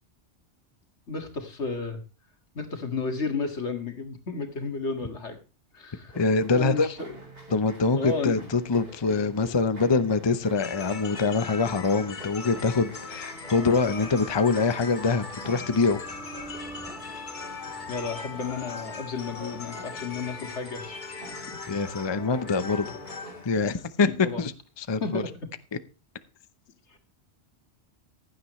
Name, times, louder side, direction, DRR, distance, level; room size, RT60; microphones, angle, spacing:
voice 1, 1.1-2.0 2.5-5.4 5.7-6.2 6.5-7.1 8.0-8.5 17.9-20.9 21.4-21.6 24.2-24.4 25.0-25.3 26.9-27.0, left 4 dB, 80° left, 5 dB, 2.3 m, -32 dB
voice 2, 6.1-6.9 7.5-16.0 21.7-23.0 23.4-25.2, left 4 dB, 25° left, 12 dB, 0.7 m, -24 dB
sound 1, 6.1-23.4, right 2 dB, 60° right, 4.5 m, -48 dB
sound 2, 10.6-24.4, left 4 dB, 45° left, 1.3 m, -40 dB
sound 3, 13.4-23.1, left 2 dB, 5° right, 2.5 m, -44 dB
15.5 x 11.5 x 3.2 m, 0.32 s
omnidirectional pair, 1.2 m